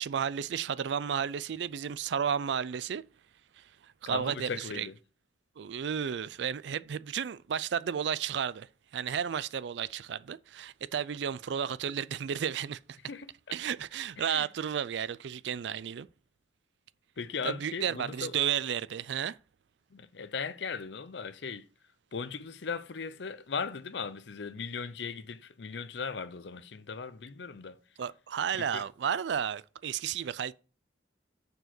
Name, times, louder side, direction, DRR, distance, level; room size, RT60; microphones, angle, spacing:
voice 1, 0.0-3.0 3.6-4.9 5.6-13.0 13.5-16.1 17.4-19.4 28.0-30.5, right 8 dB, 75° right, 0.4 m, -33 dB
voice 2, 4.1-5.0 13.1-13.6 14.2-14.5 17.2-18.4 19.9-21.7 22.1-27.8 28.7-28.9, left 5 dB, 70° left, 0.6 m, -38 dB
6.6 x 4.7 x 5.9 m
head